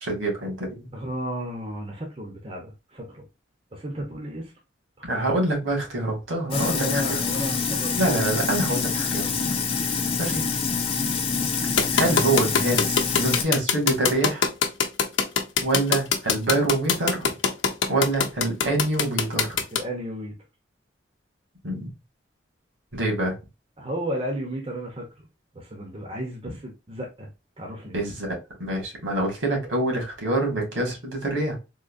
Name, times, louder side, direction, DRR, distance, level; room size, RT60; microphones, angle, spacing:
voice 1, 0.0-0.9 5.0-7.2 8.0-9.4 10.2-10.4 11.9-14.5 15.6-17.3 17.9-19.6 21.6-21.9 22.9-23.3 27.9-28.3 28.6-31.6, right 2 dB, 80° right, 1.9 m, -26 dB
voice 2, 0.9-3.2 3.7-4.5 5.0-5.4 6.5-8.1 19.7-20.4 23.8-25.1 25.5-27.3 27.6-28.0, equal, 30° right, 0.7 m, -33 dB
Sink (filling or washing), 6.5-13.4, left 5 dB, 30° left, 0.6 m, -26 dB
sound 1, 11.8-19.8, left 6 dB, 75° left, 0.7 m, -22 dB
3.8 x 2.7 x 2.5 m
head